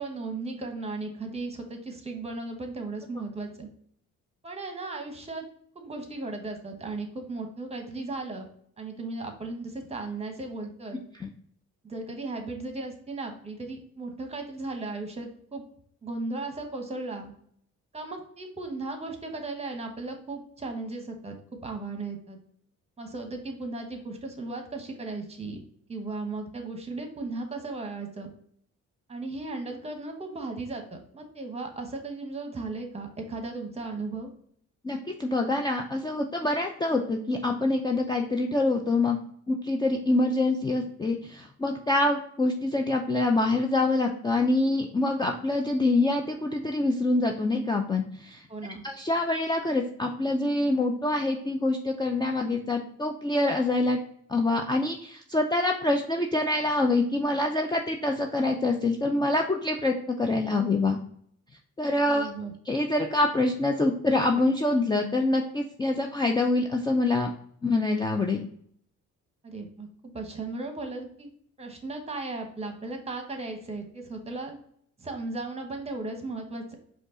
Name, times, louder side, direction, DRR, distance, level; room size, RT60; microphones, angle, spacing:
voice 1, 0.0-3.7 4.4-5.5 5.7-8.4 8.8-11.0 11.8-15.6 16.0-17.3 17.9-21.4 21.6-22.4 23.0-25.6 25.9-28.3 29.1-34.3 48.5-48.8 62.1-62.5 69.4-71.3 71.6-74.6 75.0-76.7, right 3 dB, 20° right, 4 dB, 1.0 m, -36 dB
voice 2, 34.8-39.2 39.5-48.4 48.8-54.0 54.3-61.0 61.8-62.3 62.7-67.3 67.6-68.4, left 2 dB, 15° left, 2 dB, 0.4 m, -25 dB
5.1 x 2.4 x 3.7 m, 0.64 s
cardioid pair, 90°, 30 cm